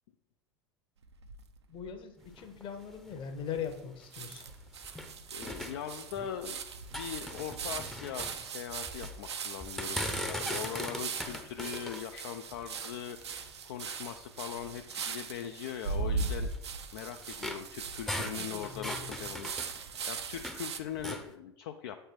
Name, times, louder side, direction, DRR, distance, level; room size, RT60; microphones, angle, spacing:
sound 1, 1.0-2.0 2.5-2.6 2.8-2.9 3.7-3.8 4.1-20.8, right 5 dB, 75° right, 0.5 m, -39 dB
voice 1, 1.7-2.1 2.4-4.4 18.6-19.1, left 7 dB, 35° left, 7 dB, 0.9 m, -40 dB
sound 2, 2.2-5.1 5.4-6.5 6.8-9.2 9.6-13.6 14.2-14.3 14.8-15.0 15.7-20.7 20.9-21.3, equal, 5° left, 0.6 m, -41 dB
voice 2, 5.3-6.6 6.9-13.2 13.6-16.5 16.9-19.5 20.1-22.0, left 9 dB, 55° left, 6 dB, 0.4 m, -41 dB
7.8 x 3.3 x 4.4 m, 0.86 s
figure-of-eight pair, 80°, 14 cm